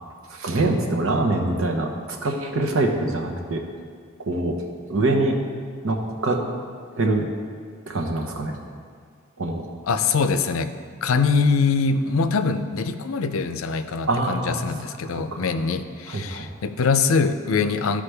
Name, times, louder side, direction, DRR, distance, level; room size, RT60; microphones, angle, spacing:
voice 1, 0.3-3.6 4.2-4.6 4.9-5.4 5.8-6.4 7.0-7.3 7.9-8.6 9.4-9.6 14.1-14.6 15.1-15.5 16.1-16.5, right 2 dB, 90° right, 2 dB, 1.0 m, -24 dB
voice 2, 9.8-10.7 11.0-18.0, left 4 dB, 90° left, 9 dB, 0.5 m, -23 dB
13.0 x 5.0 x 3.4 m, 2.1 s
head